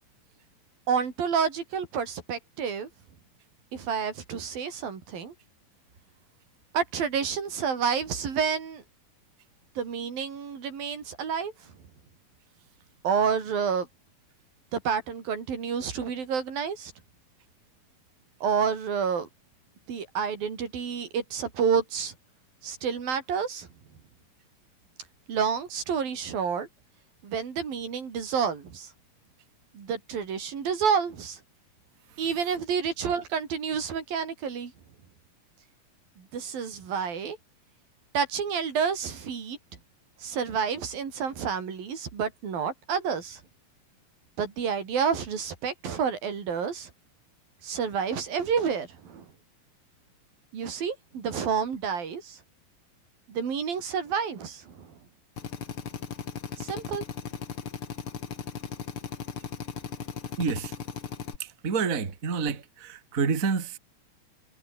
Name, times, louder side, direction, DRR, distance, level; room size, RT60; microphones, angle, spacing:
voice 1, 0.9-2.9 3.7-5.3 6.7-8.8 9.8-11.5 13.0-13.9 14.7-16.9 18.4-19.3 19.9-22.1 22.6-23.7 25.3-26.7 27.2-28.9 29.7-31.4 32.2-34.7 36.2-37.4 38.1-39.6 40.2-43.4 44.4-46.9 47.6-49.3 50.5-52.4 53.3-54.9 56.6-57.0, right 6 dB, 80° right, 5.5 m, -29 dB
Drill, 55.4-61.4, left 7 dB, 40° left, 2.7 m, -37 dB
voice 2, 60.4-60.7 61.4-63.8, right 5 dB, 25° right, 2.3 m, -28 dB
omnidirectional pair, 4.1 m